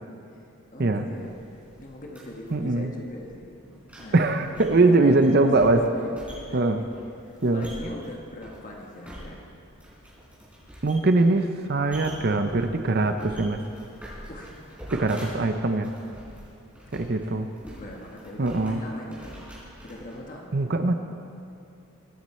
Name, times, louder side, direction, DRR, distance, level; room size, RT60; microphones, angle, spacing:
voice 1, 0.7-3.6 4.0-4.3 4.8-6.9 7.2-9.4 14.3-14.5 16.8-17.5 17.8-19.5 19.8-20.5, left 1 dB, 35° left, 0 dB, 1.3 m, -41 dB
sound 1, 1.1-20.2, equal, 5° right, 4.1 m, -46 dB
voice 2, 2.5-2.9 4.1-5.8 6.5-6.8 7.4-7.7 10.8-13.6 14.9-15.9 16.9-17.5 18.4-18.8 20.5-20.9, right 2 dB, 45° right, 7 dB, 0.7 m, -22 dB
22.0 x 9.5 x 4.4 m, 2.7 s
head